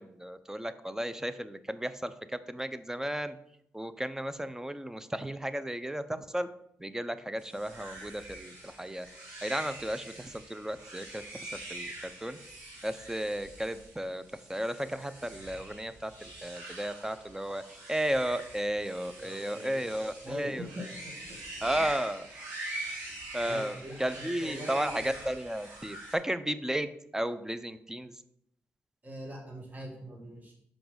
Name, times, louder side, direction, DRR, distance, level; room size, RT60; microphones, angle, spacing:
voice 1, 0.0-3.4 3.7-6.5 6.8-9.1 9.4-12.4 12.8-14.2 14.5-17.6 17.9-20.7 21.6-22.3 23.1-28.2, right 1 dB, 10° right, 12 dB, 0.6 m, -34 dB
sound 1, 7.4-26.1, right 1 dB, 90° right, 2.5 m, -44 dB
voice 2, 19.2-19.9 20.2-21.4 21.7-21.8 23.4-25.1 29.0-30.5, equal, 35° right, -2 dB, 2.1 m, -43 dB
5.8 x 5.1 x 5.1 m, 0.76 s
supercardioid pair, 55°, 5 cm